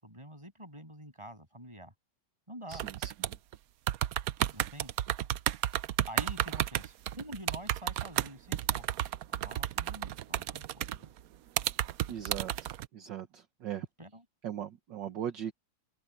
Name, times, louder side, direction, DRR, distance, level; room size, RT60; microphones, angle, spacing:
voice 1, 0.0-1.9 2.5-2.9 4.5-4.9 6.1-8.9 9.3-11.1 14.0-14.2, right 1 dB, 15° right, 7.8 m, -47 dB
voice 2, 2.7-3.4 12.1-13.9 14.4-15.5, right 10 dB, 65° right, 1.8 m, -39 dB
sound 1, 2.7-3.6 3.9-11.2 11.6-12.8, right 13 dB, 85° right, 0.7 m, -32 dB
open air
omnidirectional pair, 2.2 m